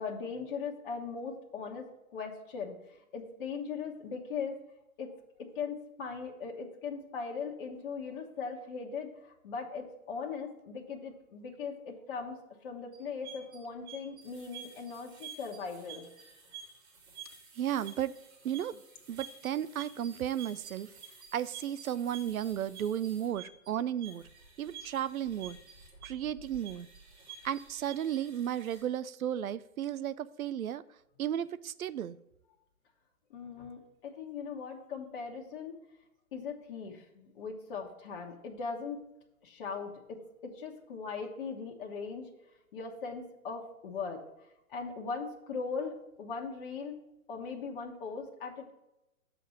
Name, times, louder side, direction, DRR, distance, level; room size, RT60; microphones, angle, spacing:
voice 1, 0.0-4.6 5.0-5.1 5.4-16.1 33.3-35.8 36.3-39.0 39.4-42.3 42.7-44.2 44.7-47.0 47.3-48.7, left 5 dB, 35° left, 1 dB, 1.0 m, -39 dB
sound 1, 12.9-28.8, right 6 dB, 50° right, 2.7 m, -50 dB
voice 2, 17.6-18.1 18.4-18.8 19.1-20.9 21.3-24.2 24.6-25.6 26.0-26.9 27.4-30.8 31.2-32.2, right 10 dB, 70° right, 16 dB, 0.5 m, -34 dB
6.9 x 4.2 x 6.3 m, 0.91 s
hypercardioid pair, 135°, 43 cm